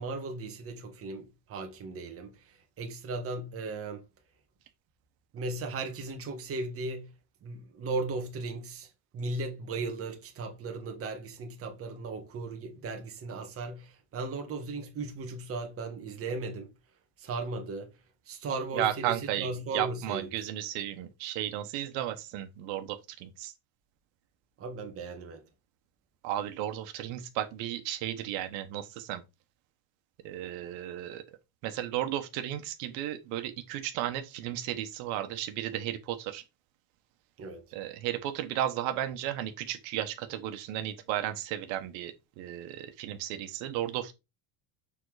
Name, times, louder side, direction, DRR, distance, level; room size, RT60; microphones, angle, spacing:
voice 1, 0.0-4.0 5.3-7.1 7.4-8.9 9.1-16.7 17.2-17.9 18.3-20.3 24.6-25.4 37.4-37.6, right 3 dB, 30° right, 1.5 m, -37 dB
voice 2, 18.7-23.5 26.2-29.2 30.2-31.2 31.6-36.4 37.7-44.1, right 12 dB, 90° right, 1.2 m, -34 dB
7.0 x 3.8 x 4.8 m
cardioid pair, 165°, 45 cm